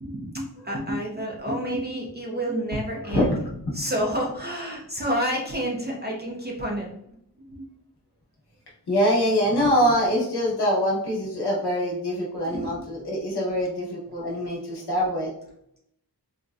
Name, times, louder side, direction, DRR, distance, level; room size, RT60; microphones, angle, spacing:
voice 1, 0.0-3.3 3.7-6.9 7.6-7.7 12.5-12.7, equal, 25° right, -2 dB, 0.5 m, -29 dB
voice 2, 8.9-15.3, equal, 75° left, -4 dB, 1.0 m, -24 dB
4.0 x 2.1 x 2.4 m, 0.74 s
wide cardioid pair, 90°, 40 cm